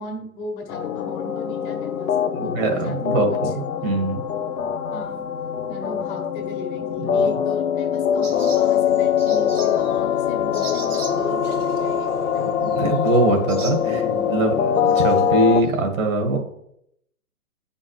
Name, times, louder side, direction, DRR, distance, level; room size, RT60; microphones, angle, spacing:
voice 1, 0.0-3.5 3.8-4.0 4.9-5.2 5.7-12.5 13.3-14.5, left 2 dB, 35° left, 2 dB, 1.8 m, -37 dB
sound 1, 0.7-15.6, left 8 dB, 70° left, 0.8 m, -23 dB
voice 2, 2.3-4.2 7.0-7.3 12.6-13.8 14.3-16.4, right 2 dB, 65° right, 4 dB, 1.9 m, -22 dB
sound 2, 8.2-15.8, right 4 dB, 90° right, 1.8 m, -41 dB
9.5 x 5.5 x 3.3 m, 0.75 s
hypercardioid pair, 145°, 43 cm